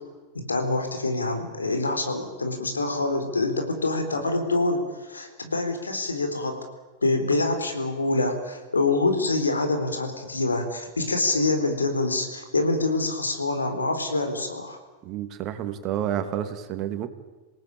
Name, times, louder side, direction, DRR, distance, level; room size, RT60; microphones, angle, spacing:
voice 1, 0.3-4.8 5.1-6.6 7.0-14.8, left 2 dB, 75° left, 6 dB, 4.0 m, -25 dB
voice 2, 15.0-17.1, right 10 dB, 35° right, 9 dB, 2.4 m, -29 dB
27.0 x 18.0 x 8.9 m, 1.2 s
figure-of-eight pair, 90°, 0 cm